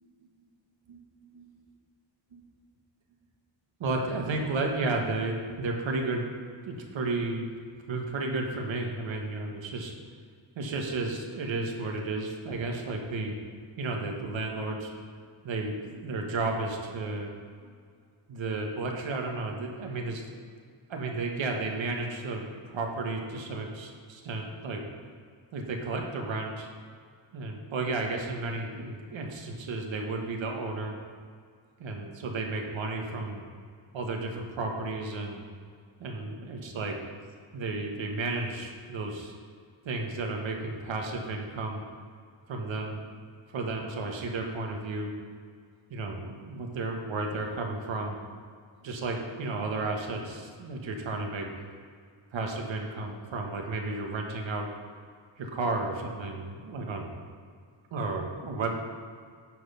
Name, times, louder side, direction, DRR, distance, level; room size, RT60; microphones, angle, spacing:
voice 1, 3.8-6.3 6.7-7.5 7.9-9.9 10.5-13.3 13.8-14.9 15.4-17.3 17.6-17.7 18.3-20.3 20.9-24.8 25.5-26.7 27.3-30.9 31.8-33.4 33.9-35.4 36.0-37.0 37.5-39.3 39.8-41.8 42.5-43.0 43.5-45.1 45.9-48.2 48.8-51.5 52.3-54.7 55.4-57.1 57.9-58.7, right 3 dB, 80° right, 1 dB, 1.5 m, -33 dB
9.2 x 6.3 x 5.6 m, 2.1 s
cardioid pair, 90°, 46 cm